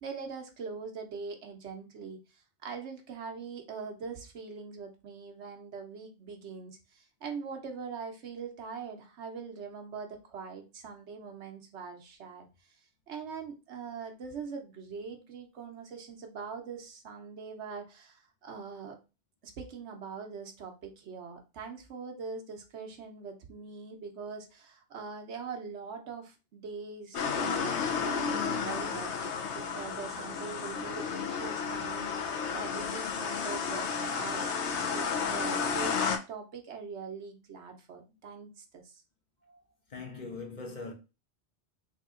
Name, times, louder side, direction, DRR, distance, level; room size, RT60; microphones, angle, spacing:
voice 1, 0.0-12.5 13.1-19.0 19.4-33.9 34.1-39.0, right 5 dB, 75° right, 1.1 m, -42 dB
sound 1, 27.1-36.2, left 6 dB, 80° left, 1.0 m, -32 dB
voice 2, 39.9-40.9, left 4 dB, 45° left, 0.8 m, -41 dB
3.6 x 2.9 x 3.6 m
omnidirectional pair, 1.2 m